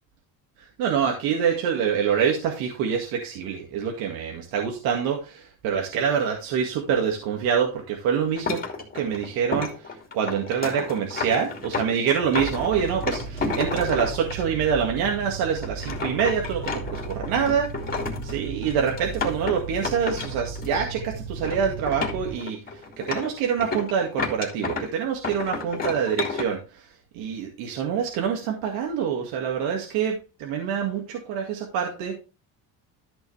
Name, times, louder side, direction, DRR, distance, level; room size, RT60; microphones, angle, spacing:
voice 1, 0.6-8.6 8.9-32.2, right 7 dB, 70° right, 2 dB, 2.1 m, -26 dB
sound 1, 8.4-14.4 15.0-15.1 15.5-21.0 21.3-21.6 21.9-24.9 25.2-26.4, left 4 dB, 25° left, 2.7 m, -31 dB
sound 2, 12.3-22.3, right 5 dB, 90° right, 4.1 m, -36 dB
13.0 x 6.3 x 3.3 m, 0.30 s
cardioid pair, 160°, 37 cm